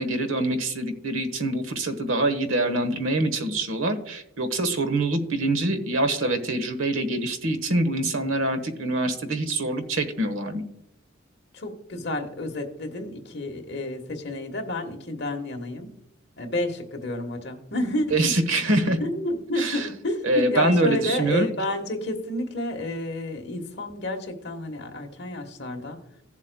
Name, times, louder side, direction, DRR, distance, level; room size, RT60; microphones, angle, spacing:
voice 1, 0.0-10.6 18.1-19.0 19.6-19.9 20.2-21.5, right 2 dB, 80° right, 8 dB, 1.2 m, -25 dB
voice 2, 11.5-15.9 16.4-18.3 19.0-26.0, left 1 dB, 55° left, 4 dB, 1.3 m, -30 dB
16.5 x 7.3 x 2.3 m, 0.83 s
head